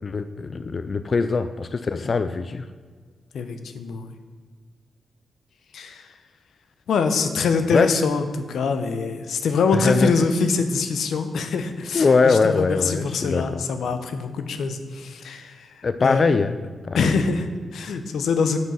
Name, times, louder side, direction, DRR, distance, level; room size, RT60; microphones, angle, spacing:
voice 1, 0.0-2.7 7.7-8.0 9.7-10.1 11.9-13.6 15.8-16.6 16.9-17.0, left 4 dB, 40° left, 11 dB, 0.3 m, -22 dB
voice 2, 3.3-4.1 5.7-6.1 6.9-15.7 16.0-16.3 16.9-18.6, left 4 dB, 90° left, 8 dB, 0.7 m, -24 dB
7.7 x 5.7 x 5.6 m, 1.5 s
wide cardioid pair, 115°, 0 cm